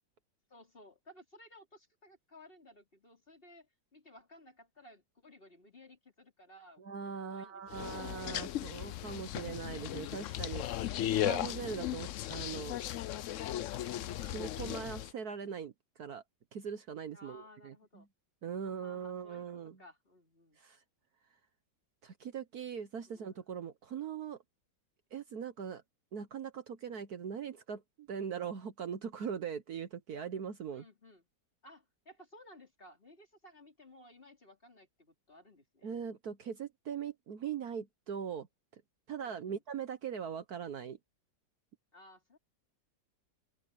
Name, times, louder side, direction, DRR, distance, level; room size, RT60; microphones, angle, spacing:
voice 1, 0.5-8.0 17.1-18.1 18.5-20.6 23.1-23.4 30.7-31.3 31.6-35.9 39.2-39.6 41.9-42.4, left 1 dB, 30° left, 3.9 m, -58 dB
voice 2, 6.8-10.6 11.1-12.8 14.1-15.7 16.0-16.2 16.5-18.0 18.4-19.8 20.6-20.8 22.0-24.4 25.1-25.8 26.1-30.8 35.8-38.5 39.1-41.0, right 7 dB, 60° right, 1.5 m, -41 dB
sound 1, 7.7-15.1, left 12 dB, 75° left, 0.7 m, -36 dB
open air
omnidirectional pair, 2.0 m